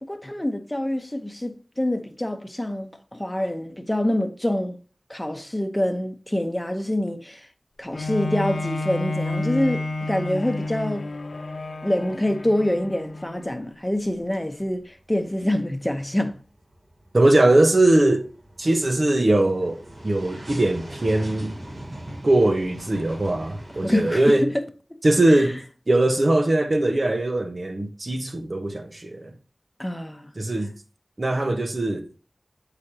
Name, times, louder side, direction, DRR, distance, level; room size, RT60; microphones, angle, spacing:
voice 1, 0.0-4.8 5.1-7.5 7.8-11.1 11.8-16.4 23.8-24.6 25.3-25.5 29.8-30.3, left 1 dB, 15° left, 0.9 m, -26 dB
Bowed string instrument, 7.9-13.6 14.2-14.3, left 2 dB, 80° left, 0.6 m, -30 dB
sound 1, 14.2-14.6 14.9-24.1, right 1 dB, 75° right, 2.7 m, -41 dB
voice 2, 17.1-18.3 18.6-21.5 22.2-24.5 25.0-25.6 25.9-29.3 30.4-30.7 31.2-32.2, right 1 dB, 55° right, 1.0 m, -21 dB
8.3 x 4.9 x 2.8 m
wide cardioid pair, 45°, 0 cm